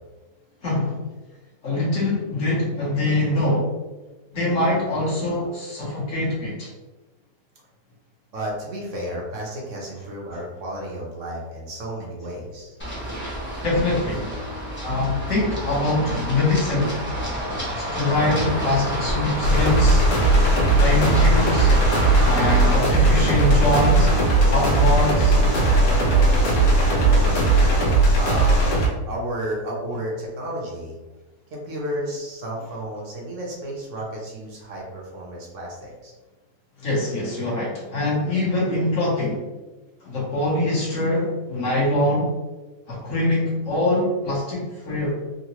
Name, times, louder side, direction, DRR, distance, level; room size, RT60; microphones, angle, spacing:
voice 1, 0.6-1.0 1.6-3.7 4.3-6.7 13.6-14.3 14.8-16.9 17.7-20.0 20.8-21.8 22.2-24.1 24.5-25.4 36.8-39.4 40.0-42.3 42.9-45.2, left 2 dB, 55° left, -5 dB, 1.2 m, -23 dB
voice 2, 8.3-12.8 28.1-28.8 29.1-30.9 31.5-36.1, right 1 dB, 60° right, -2 dB, 0.9 m, -32 dB
Run, 12.8-22.8, equal, 10° left, 0.7 m, -29 dB
sound 1, 18.1-27.9, equal, 90° right, 1.4 m, -29 dB
sound 2, 19.4-28.9, right 2 dB, 75° left, 1.4 m, -18 dB
3.7 x 2.1 x 2.9 m, 1.2 s
omnidirectional pair, 1.8 m